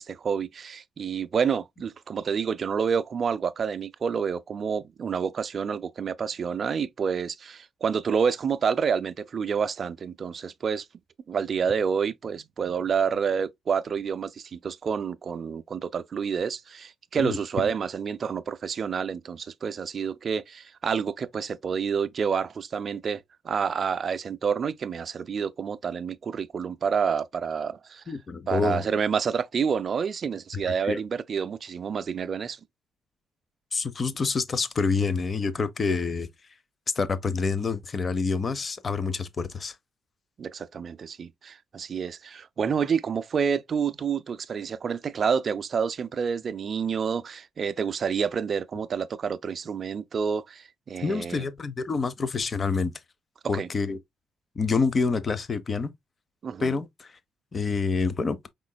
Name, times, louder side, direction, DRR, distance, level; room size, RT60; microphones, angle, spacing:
voice 1, 0.0-10.9 11.3-28.0 28.5-32.6 40.4-51.4 53.5-53.7 56.4-56.8, right 6 dB, 50° right, 0.5 m, -28 dB
voice 2, 17.2-17.7 28.1-28.8 30.8-31.0 33.7-36.3 36.9-39.7 51.0-52.9 53.5-54.0 54.6-55.9 56.6-57.1 57.5-58.5, left 4 dB, 35° left, 0.6 m, -27 dB
5.0 x 3.7 x 2.2 m
cardioid pair, 90°, 0 cm